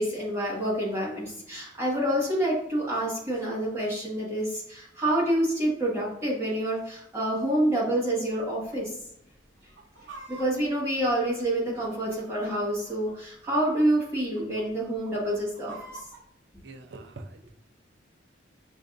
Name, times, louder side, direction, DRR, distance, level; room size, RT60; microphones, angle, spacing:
voice 1, 0.0-9.0 10.3-16.0, right 1 dB, 15° right, -7 dB, 1.2 m, -27 dB
Chicken rooster, 8.3-8.8 9.1-9.2 9.6-11.9 12.6-13.3 13.6-13.9 14.2-14.6 15.1-16.2, right 3 dB, 80° right, 0.8 m, -46 dB
voice 2, 16.6-17.5, right 2 dB, 60° right, 7 dB, 0.4 m, -44 dB
5.9 x 2.5 x 2.5 m, 0.77 s
head